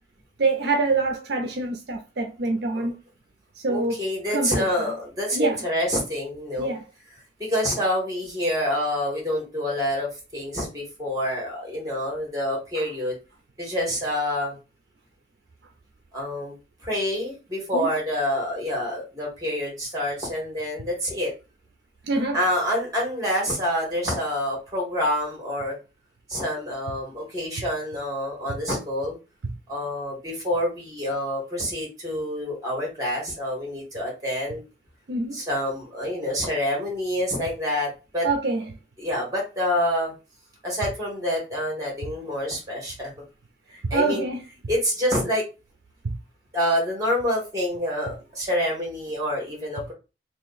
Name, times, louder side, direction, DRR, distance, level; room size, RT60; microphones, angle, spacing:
voice 1, 0.4-3.0 3.6-4.0 4.3-4.7 5.3-5.6 6.6-6.8 12.8-12.9 16.2-16.3 17.7-17.9 22.1-22.4 28.5-28.6 29.4-29.5 35.1-35.4 38.2-38.7 43.8-44.4 46.0-46.1, right 3 dB, 65° right, 0.5 m, -25 dB
voice 2, 3.7-6.7 7.4-13.2 13.6-14.6 16.1-16.5 16.8-21.3 22.3-25.8 26.3-29.2 29.7-34.6 35.3-38.3 39.0-40.1 40.6-43.1 43.7-44.2 44.7-45.4 46.5-49.9, equal, 20° right, 1.7 m, -27 dB
2.9 x 2.5 x 4.0 m
head